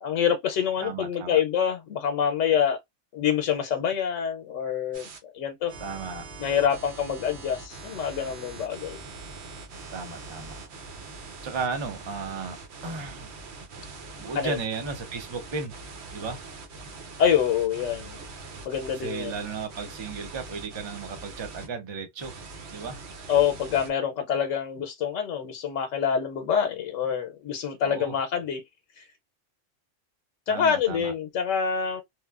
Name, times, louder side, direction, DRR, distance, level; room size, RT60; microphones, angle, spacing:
voice 1, 0.0-2.8 3.1-5.1 5.3-5.7 6.4-9.0 14.4-14.6 17.2-18.2 18.6-19.3 23.3-28.6 29.0-29.1 30.5-32.0, left 8 dB, 90° left, 0.9 m, -26 dB
voice 2, 0.8-1.4 5.8-6.2 9.9-10.6 11.4-12.6 12.8-13.3 13.7-15.7 16.1-16.4 19.0-22.4 22.7-23.0 27.8-28.1 30.5-31.1, right 4 dB, 35° right, 0.5 m, -35 dB
sound 1, 4.9-5.2 5.7-21.7 22.2-23.9, right 3 dB, 65° right, 1.0 m, -43 dB
3.0 x 2.1 x 2.3 m
omnidirectional pair, 1.3 m